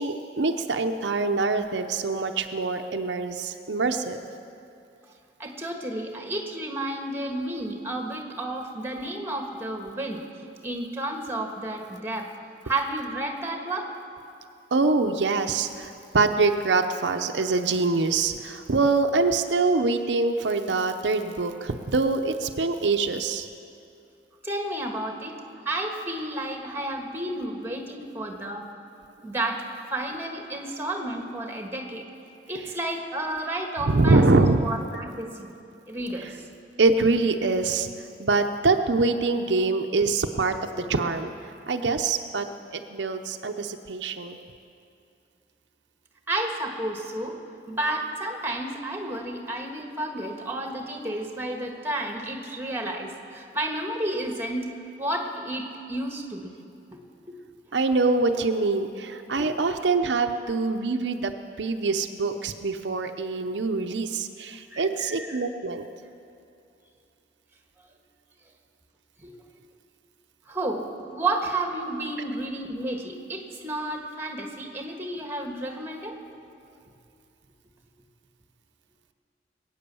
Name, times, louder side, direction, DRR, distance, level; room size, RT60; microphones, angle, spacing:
voice 1, 0.0-4.2 14.7-23.5 33.8-34.7 36.8-37.9 38.2-41.3 41.7-44.4 57.7-61.3 61.6-65.8, right 3 dB, 75° right, 6 dB, 0.7 m, -24 dB
voice 2, 5.4-10.2 10.6-12.3 12.6-13.9 24.4-25.3 25.6-28.7 29.2-29.6 29.9-32.1 32.5-35.5 35.9-36.5 40.8-41.0 46.3-47.4 47.7-54.7 55.0-56.6 56.9-57.0 57.3-57.4 59.4-59.5 64.7-65.4 69.2-69.4 70.5-76.1, right 1 dB, 15° right, 3 dB, 1.5 m, -31 dB
21.5 x 9.2 x 7.0 m, 2.6 s
head